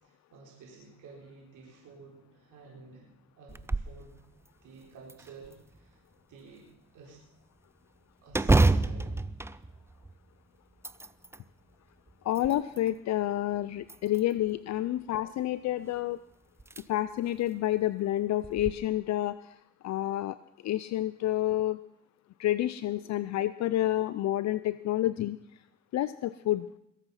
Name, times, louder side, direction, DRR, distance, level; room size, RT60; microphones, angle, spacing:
voice 1, 0.0-3.0 3.4-4.2 4.6-6.0 6.3-6.7 6.9-7.2 8.2-9.3, right 4 dB, 80° right, -2 dB, 4.1 m, -51 dB
sound 1, 3.5-4.0 4.5-4.6 5.1-5.9 8.3-10.3 10.7-11.4 12.1-12.9 13.8-14.5 16.0-16.1 16.6-16.8 17.3-17.4 18.4-18.7, right 2 dB, 10° right, 0.4 m, -28 dB
voice 2, 12.2-16.2 16.9-20.4 20.6-21.8 22.4-25.4 25.9-26.7, left 14 dB, 65° left, 14 dB, 0.5 m, -29 dB
21.5 x 8.2 x 5.7 m, 0.79 s
cardioid pair, 90°, 30 cm